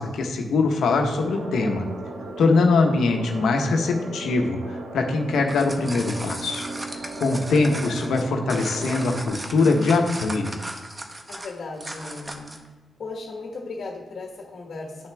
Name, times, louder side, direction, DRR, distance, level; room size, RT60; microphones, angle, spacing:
voice 1, 0.0-1.8 2.4-6.6 7.2-10.5, left 3 dB, 80° left, 3 dB, 1.0 m, -22 dB
sound 1, 0.8-9.3, right 2 dB, 85° right, 0.9 m, -36 dB
sound 2, 5.3-12.7, right 1 dB, 15° right, 0.8 m, -36 dB
voice 2, 11.3-12.5 13.0-15.1, left 3 dB, 55° left, 0 dB, 1.4 m, -36 dB
8.7 x 5.9 x 3.5 m, 1.3 s
cardioid pair, 100°, 0 cm